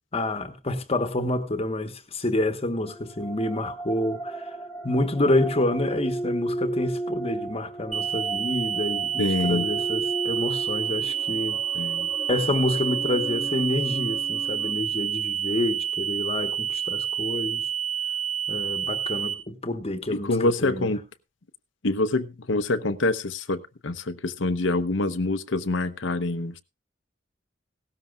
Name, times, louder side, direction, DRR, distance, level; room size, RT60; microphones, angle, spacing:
voice 1, 0.1-4.6 4.8-11.6 12.3-17.7 18.5-20.9, left 1 dB, 30° left, 1.2 m, -28 dB
sound 1, 2.9-14.7, right 2 dB, 5° left, 1.1 m, -35 dB
sound 2, 7.9-19.3, right 9 dB, 40° right, 3.8 m, -28 dB
voice 2, 9.2-9.7 11.7-12.1 20.1-21.0 21.8-26.6, left 2 dB, 75° left, 0.9 m, -26 dB
17.0 x 13.0 x 2.3 m
head